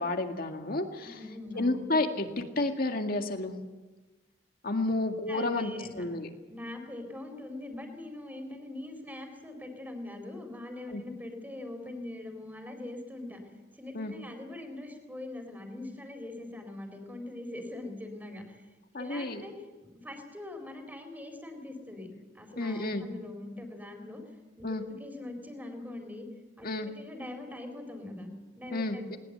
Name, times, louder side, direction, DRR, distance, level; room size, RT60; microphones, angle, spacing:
voice 1, 0.0-1.1 1.5-3.5 4.6-6.3 10.9-11.0 13.9-14.1 18.9-19.4 22.6-23.0 24.6-24.8 26.6-26.9 28.7-29.2, left 2 dB, 55° left, 5 dB, 2.0 m, -31 dB
voice 2, 1.0-1.8 4.8-4.9 5.3-6.0 6.5-13.4 13.7-18.7 18.9-19.5 19.8-22.1 22.3-24.2 24.6-24.7 25.0-26.3 26.6-29.2, left 1 dB, 10° right, 5 dB, 4.0 m, -42 dB
20.0 x 19.5 x 8.0 m, 1.2 s
head